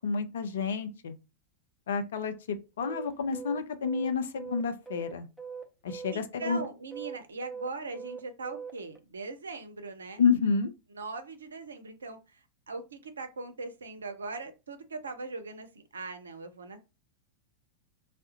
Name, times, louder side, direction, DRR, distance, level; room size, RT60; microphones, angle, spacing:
voice 1, 0.0-1.2 1.9-5.3 5.8-6.6 10.2-10.7, left 5 dB, 60° left, 0.4 m, -29 dB
sound 1, 2.8-9.0, right 6 dB, 5° right, 0.6 m, -41 dB
voice 2, 6.1-10.2 10.9-16.8, right 3 dB, 70° right, 0.5 m, -40 dB
3.5 x 2.1 x 2.8 m
figure-of-eight pair, 90°, 0 cm